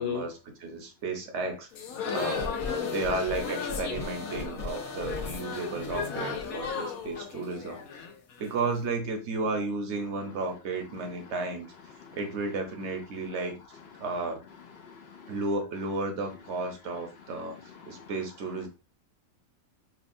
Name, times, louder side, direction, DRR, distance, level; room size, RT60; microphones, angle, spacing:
voice 1, 0.0-1.7 2.1-2.5 2.9-7.8 8.4-11.7 12.1-13.6 14.0-14.4 15.3-17.6 17.9-18.7, right 3 dB, 55° right, 4 dB, 1.1 m, -33 dB
sound 1, 1.7-8.7, left 6 dB, 90° left, 1.1 m, -35 dB
sound 2, 2.1-7.1, left 2 dB, 45° left, 0.9 m, -39 dB
voice 2, 11.0-11.3 12.0-12.2 14.0-14.1 14.8-15.4 17.2-18.1, left 8 dB, 65° left, 5 dB, 0.6 m, -40 dB
5.7 x 2.1 x 2.6 m, 0.31 s
omnidirectional pair, 1.5 m